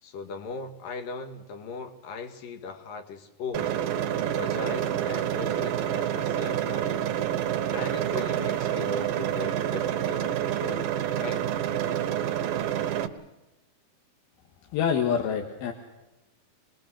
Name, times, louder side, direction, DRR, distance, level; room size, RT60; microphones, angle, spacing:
voice 1, 0.0-3.8 4.3-7.0 7.7-10.8 11.2-11.5, left 4 dB, 70° left, 6 dB, 3.3 m, -38 dB
sound 1, 3.5-13.1, right 10 dB, 70° right, 2.8 m, -28 dB
voice 2, 14.7-15.7, left 7 dB, 85° left, 3 dB, 3.5 m, -26 dB
26.0 x 21.0 x 6.4 m, 1.0 s
omnidirectional pair, 4.3 m